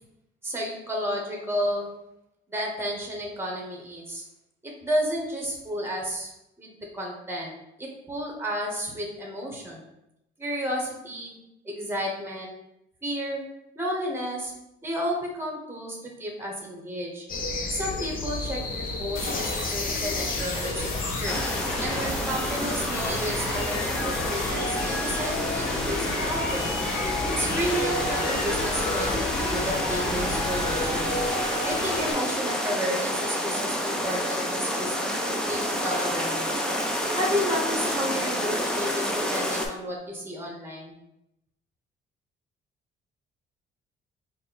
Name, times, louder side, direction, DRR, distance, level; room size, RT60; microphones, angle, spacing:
voice 1, 0.4-1.9 2.5-4.2 4.6-6.3 6.6-7.5 7.8-9.8 10.4-11.4 11.6-12.5 13.0-13.4 13.7-14.5 14.8-17.3 17.7-21.4 21.8-26.8 27.4-31.2 31.6-34.9 35.5-36.6 37.2-41.0, equal, 10° right, 0 dB, 1.0 m, -32 dB
sound 1, 17.3-31.3, left 2 dB, 45° left, 0.6 m, -33 dB
sound 2, 19.2-32.1, left 2 dB, 90° left, 0.9 m, -32 dB
sound 3, 21.3-39.7, equal, 5° left, 0.5 m, -29 dB
4.0 x 2.2 x 4.0 m, 0.84 s
cardioid pair, 90°, 20 cm